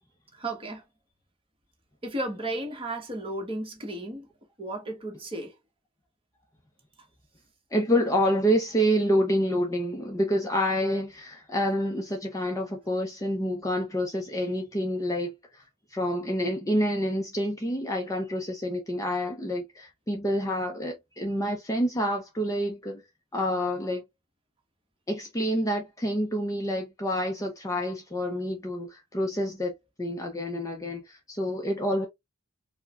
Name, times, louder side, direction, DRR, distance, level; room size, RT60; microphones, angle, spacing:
voice 1, 0.3-0.8 2.0-4.3 4.6-5.5, right 1 dB, 25° right, 1.1 m, -34 dB
voice 2, 7.7-15.6 15.9-23.0 23.3-24.0 25.1-32.1, equal, 15° left, 0.5 m, -28 dB
4.7 x 2.1 x 2.4 m
head